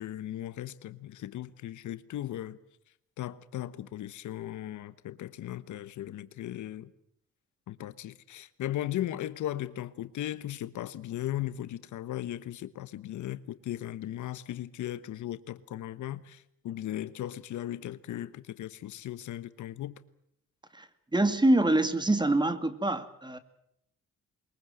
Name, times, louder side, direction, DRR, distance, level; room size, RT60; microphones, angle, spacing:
voice 1, 0.0-2.6 3.2-6.9 7.7-20.0, left 13 dB, 75° left, 1.2 m, -37 dB
voice 2, 21.1-23.4, right 1 dB, 15° right, 2.4 m, -25 dB
23.0 x 21.5 x 7.9 m
cardioid pair, 90°, 30 cm